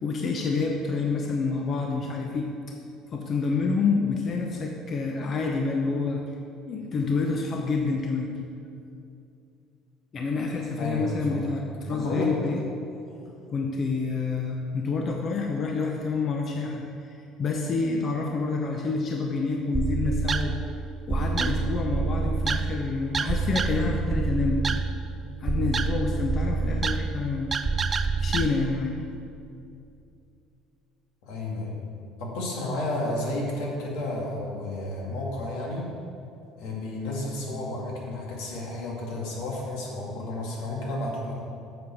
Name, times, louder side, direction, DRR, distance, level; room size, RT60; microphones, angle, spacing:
voice 1, 0.0-2.5 3.1-6.2 6.7-8.3 10.1-12.6 13.5-20.6 21.1-24.6 25.4-27.5 28.2-29.0, left 4 dB, 35° left, 1 dB, 0.8 m, -28 dB
voice 2, 10.8-11.5 11.9-12.3 31.2-31.7 32.2-35.9 36.6-41.4, left 1 dB, 80° left, -2 dB, 2.4 m, -32 dB
sound 1, 19.7-28.5, right 4 dB, 25° right, 0.4 m, -27 dB
8.0 x 7.0 x 6.1 m, 2.6 s
cardioid pair, 145°, 0 cm